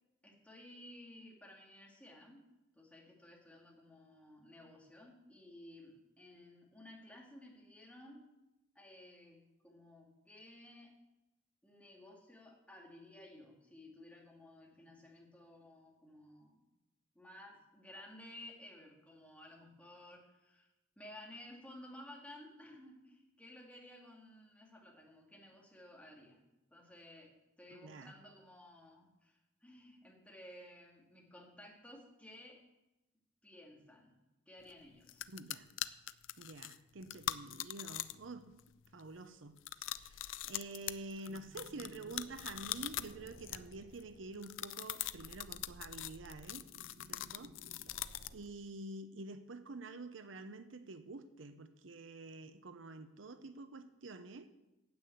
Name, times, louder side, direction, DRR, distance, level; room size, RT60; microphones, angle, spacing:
voice 1, 0.2-2.4 2.7-8.2 8.7-10.9 11.6-16.6 17.1-20.7 21.0-26.4 26.7-27.3 27.6-32.6 33.4-34.2 34.5-35.2, left 1 dB, 5° left, 2.5 m, -55 dB
voice 2, 27.7-28.1 35.3-35.7 36.4-38.6 38.9-46.6 47.1-47.5 48.3-54.5, right 2 dB, 80° right, 0.8 m, -48 dB
sound 1, 34.7-34.8 35.1-38.3 38.6-39.0 39.6-44.0 44.4-48.4, left 13 dB, 80° left, 0.5 m, -42 dB
sound 2, 41.3-48.4, right 1 dB, 60° right, 1.1 m, -58 dB
9.4 x 8.5 x 8.0 m
head